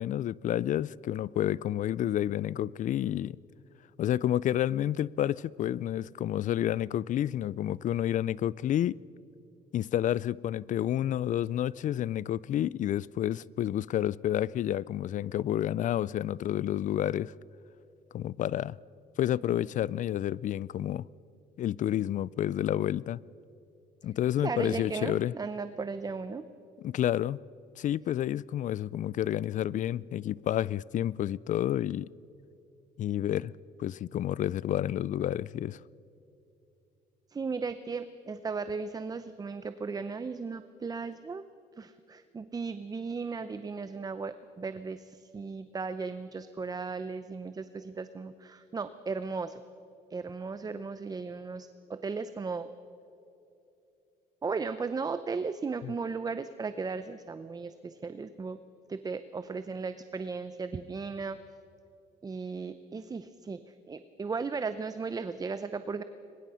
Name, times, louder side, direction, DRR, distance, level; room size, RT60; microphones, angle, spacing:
voice 1, 0.0-3.4 4.0-9.0 9.7-17.3 18.1-18.8 19.2-21.0 21.6-23.2 24.0-25.3 26.8-27.4 27.8-32.1 33.0-33.5 33.8-35.8 55.8-55.9, left 11 dB, 50° left, 0.4 m, -30 dB
voice 2, 24.4-26.5 37.3-41.5 41.8-49.6 50.1-52.7 54.4-58.6 58.9-61.4 62.2-66.0, right 4 dB, 20° right, 0.7 m, -36 dB
23.0 x 21.0 x 5.7 m
cardioid pair, 110°, 17 cm